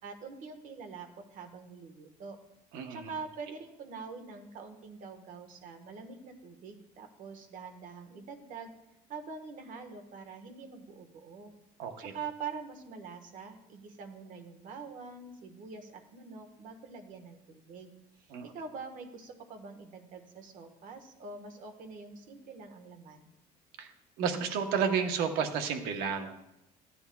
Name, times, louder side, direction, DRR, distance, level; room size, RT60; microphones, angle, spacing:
voice 1, 0.0-2.4 2.9-8.7 9.1-11.5 12.0-17.9 18.2-23.3, right 5 dB, 60° right, 6 dB, 1.3 m, -45 dB
voice 2, 2.7-3.1 11.8-12.1 18.3-18.5 23.8-23.9 24.2-26.4, right 6 dB, 90° right, 6 dB, 1.0 m, -31 dB
15.0 x 9.8 x 2.3 m, 0.87 s
cardioid pair, 145°, 15 cm